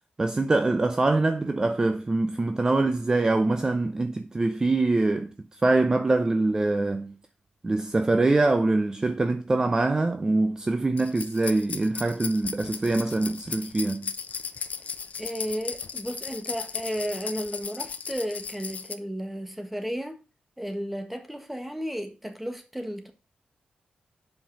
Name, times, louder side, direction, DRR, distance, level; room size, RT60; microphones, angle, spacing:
voice 1, 0.2-7.2 7.6-14.1, right 2 dB, 20° right, 0.6 m, -24 dB
sound 1, 11.0-18.9, left 6 dB, 55° left, 0.8 m, -36 dB
voice 2, 15.2-20.2 20.6-23.1, equal, 5° right, 1.4 m, -33 dB
7.5 x 5.5 x 5.7 m
wide cardioid pair, 115°, 3 cm